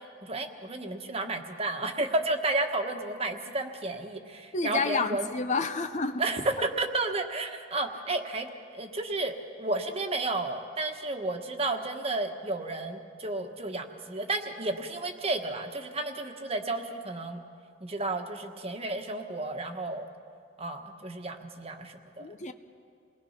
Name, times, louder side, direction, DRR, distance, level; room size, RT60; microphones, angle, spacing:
voice 1, 0.2-5.2 6.2-8.5 8.7-17.4 17.8-20.1 20.6-22.3, right 2 dB, 30° right, 4 dB, 1.4 m, -32 dB
voice 2, 4.5-6.2 22.2-22.5, left 4 dB, 40° left, 8 dB, 0.8 m, -29 dB
28.5 x 20.5 x 5.8 m, 2.3 s
head